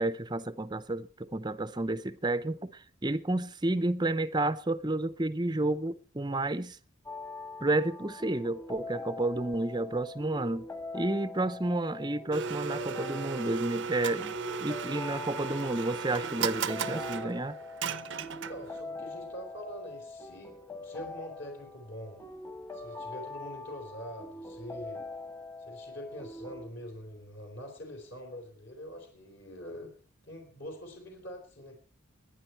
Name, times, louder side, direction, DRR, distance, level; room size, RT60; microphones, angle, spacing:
voice 1, 0.0-6.8 7.6-10.7 10.9-17.6, right 2 dB, 20° right, 0.6 m, -31 dB
sound 1, 7.1-26.7, left 3 dB, 15° left, 1.4 m, -43 dB
Domestic sounds home sounds, 12.3-18.8, right 6 dB, 60° right, 0.6 m, -36 dB
voice 2, 18.3-20.5 20.8-22.2 22.7-25.0 25.6-29.9 30.2-31.8, equal, 55° left, 4.2 m, -44 dB
21.5 x 10.0 x 4.5 m
head